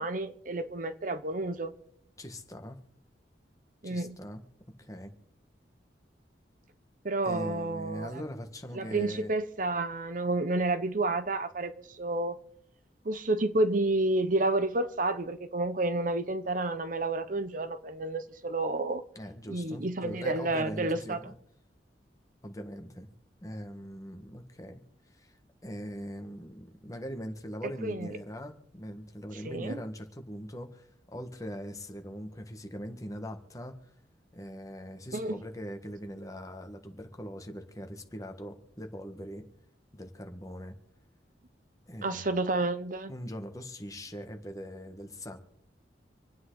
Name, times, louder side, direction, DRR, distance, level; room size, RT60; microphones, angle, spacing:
voice 1, 0.0-1.7 3.8-4.1 7.0-8.2 8.7-12.4 13.0-19.0 19.5-21.2 27.8-28.1 29.4-29.8 35.1-35.4 42.0-43.1, right 2 dB, 50° right, 0.9 m, -30 dB
voice 2, 2.2-2.8 3.8-4.4 4.8-5.1 7.2-9.3 19.1-21.3 22.4-23.1 23.4-24.8 25.1-25.4 25.6-33.9 34.3-39.5 39.9-40.8 41.9-42.3 43.1-45.4, equal, 20° left, 1.6 m, -41 dB
27.0 x 9.3 x 4.0 m
head